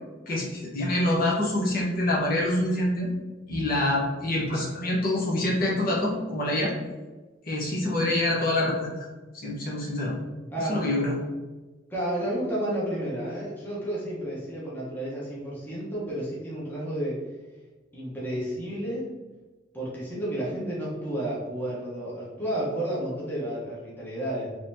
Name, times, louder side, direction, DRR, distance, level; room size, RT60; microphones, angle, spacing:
voice 1, 0.3-3.1 3.5-6.7 7.4-8.9 9.4-10.2 10.6-11.2, left 1 dB, 50° left, -4 dB, 1.0 m, -26 dB
voice 2, 10.5-10.8 11.9-17.2 17.9-19.1 19.7-24.6, right 1 dB, 10° left, -7 dB, 0.9 m, -31 dB
4.0 x 3.1 x 2.7 m, 1.2 s
head